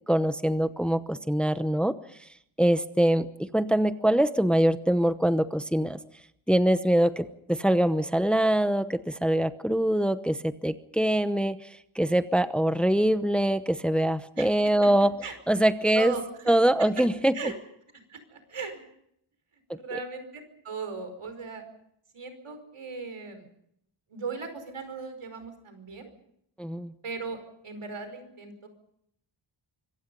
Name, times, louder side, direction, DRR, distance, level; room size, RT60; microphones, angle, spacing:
voice 1, 0.1-1.9 2.6-6.0 6.5-11.6 11.9-15.1 15.5-16.1 16.5-17.3 26.6-26.9, right 1 dB, ahead, 11 dB, 0.9 m, -24 dB
voice 2, 14.3-14.9 15.2-15.3 16.0-16.5 17.3-17.5 18.1-18.9 19.7-21.6 22.1-23.5 24.1-26.1 27.0-28.7, right 4 dB, 90° right, 8 dB, 5.2 m, -38 dB
25.5 x 24.0 x 5.5 m, 0.73 s
wide cardioid pair, 160°, 49 cm